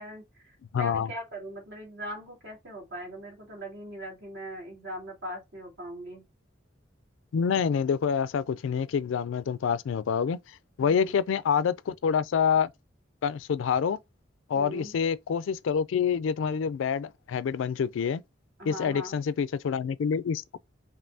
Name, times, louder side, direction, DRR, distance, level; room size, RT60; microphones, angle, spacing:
voice 1, 0.0-6.2 10.8-11.2 14.5-14.9 18.6-19.2, right 1 dB, 65° right, 2.4 m, -40 dB
voice 2, 0.7-1.1 7.3-10.4 10.8-12.7 13.2-14.0 14.5-18.2 18.6-20.6, left 7 dB, 85° left, 0.3 m, -27 dB
5.4 x 2.6 x 2.6 m
head